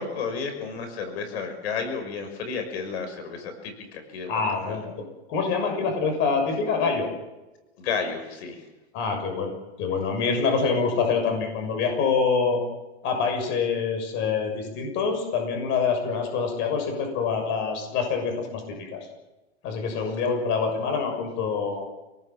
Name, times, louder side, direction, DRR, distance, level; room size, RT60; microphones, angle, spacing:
voice 1, 0.0-4.8 7.8-8.7 20.1-20.2, left 5 dB, 70° left, 7 dB, 6.2 m, -32 dB
voice 2, 4.3-4.9 5.3-7.1 8.9-12.6 13.0-18.6 18.9-19.0 19.6-21.8, left 5 dB, 35° left, 5 dB, 6.5 m, -25 dB
28.5 x 19.0 x 7.5 m, 1.0 s
supercardioid pair, 160°, 33 cm